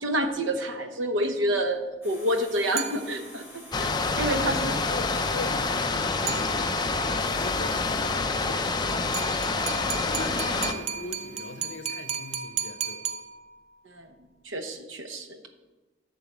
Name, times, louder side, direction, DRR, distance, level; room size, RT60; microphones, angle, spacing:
voice 1, 0.0-3.4 3.8-4.7 10.3-10.4 13.8-14.1 14.4-15.4, right 1 dB, 80° right, 0.9 m, -28 dB
sound 1, 2.0-12.4, equal, 10° right, 2.8 m, -49 dB
sound 2, 2.8-3.5 6.3-7.0 9.1-13.8, right 8 dB, 35° right, 0.6 m, -35 dB
sound 3, 3.7-10.7, left 3 dB, 20° left, 0.4 m, -27 dB
voice 2, 4.0-13.1, left 2 dB, 70° left, 0.8 m, -41 dB
11.0 x 3.9 x 7.2 m
head